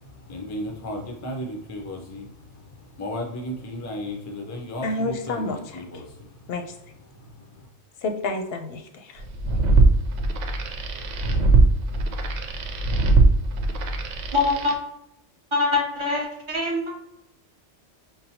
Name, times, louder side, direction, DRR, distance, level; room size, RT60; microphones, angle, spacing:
voice 1, 0.0-7.7, equal, 25° left, 1 dB, 0.4 m, -35 dB
voice 2, 4.8-5.6 6.5-6.6 8.0-9.2, left 2 dB, 60° left, 5 dB, 0.7 m, -29 dB
sound 1, 9.2-14.7, right 3 dB, 85° right, 0.9 m, -21 dB
voice 3, 14.3-14.7 15.5-16.9, left 3 dB, 30° right, -2 dB, 0.6 m, -24 dB
5.6 x 2.2 x 2.7 m, 0.83 s
omnidirectional pair, 1.2 m